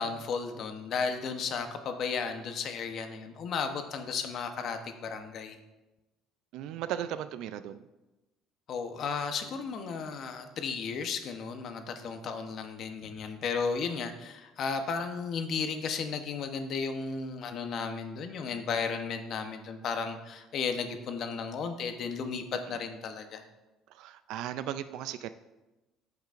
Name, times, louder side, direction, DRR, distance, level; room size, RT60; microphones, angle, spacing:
voice 1, 0.0-5.6 8.7-23.4, left 5 dB, 50° left, 7 dB, 0.9 m, -34 dB
voice 2, 6.5-7.9 22.5-22.8 23.9-25.3, right 11 dB, 70° right, 12 dB, 0.3 m, -37 dB
14.0 x 5.9 x 2.5 m, 1.1 s
cardioid pair, 130°, 0 cm